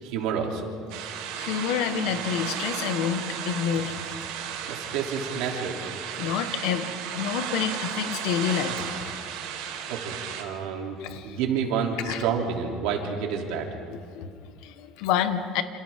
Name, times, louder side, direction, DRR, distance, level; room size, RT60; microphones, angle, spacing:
voice 1, 0.0-0.7 4.7-5.8 9.9-11.0 11.2-13.7, right 6 dB, 75° right, 1 dB, 3.1 m, -29 dB
sound 1, 0.9-10.4, right 8 dB, 90° right, 2.7 m, -34 dB
voice 2, 1.3-3.9 6.2-8.8 11.0-11.4 12.0-12.2 13.9-15.6, left 8 dB, 70° left, 9 dB, 1.3 m, -28 dB
28.0 x 27.5 x 3.7 m, 2.3 s
cardioid pair, 160°, 0 cm